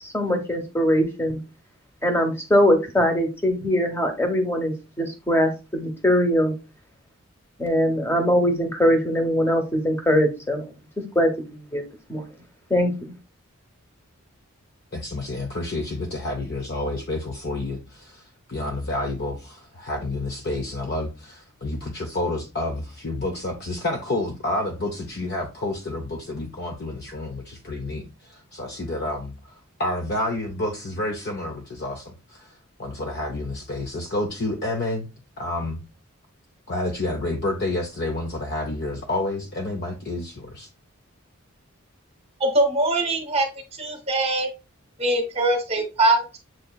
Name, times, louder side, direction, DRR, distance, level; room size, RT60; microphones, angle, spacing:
voice 1, 0.0-1.4 2.0-6.5 7.6-10.6 11.1-11.8 12.1-12.3 12.7-12.9, equal, 10° left, 0.9 m, -22 dB
voice 2, 14.9-18.2 18.5-35.1 35.4-35.8 36.7-40.7, left 2 dB, 50° left, 0.6 m, -29 dB
voice 3, 42.4-43.5 43.8-44.5 45.0-46.4, right 2 dB, 30° right, 0.9 m, -22 dB
7.4 x 2.7 x 2.3 m
head